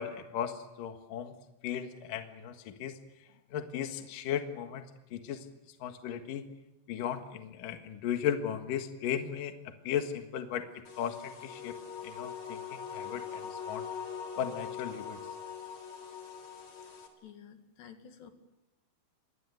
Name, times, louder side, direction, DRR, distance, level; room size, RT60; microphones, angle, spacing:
voice 1, 0.0-1.4 1.6-3.0 3.5-4.8 5.1-5.5 5.8-6.5 6.9-9.5 9.8-10.7 11.0-11.7 12.0-13.8 14.4-15.2, left 9 dB, 60° left, 6 dB, 2.9 m, -36 dB
sound 1, 10.8-17.1, left 7 dB, 40° left, 4.5 m, -42 dB
voice 2, 17.2-18.3, left 8 dB, 80° left, 6 dB, 4.3 m, -51 dB
28.5 x 23.0 x 8.0 m, 0.93 s
omnidirectional pair, 4.9 m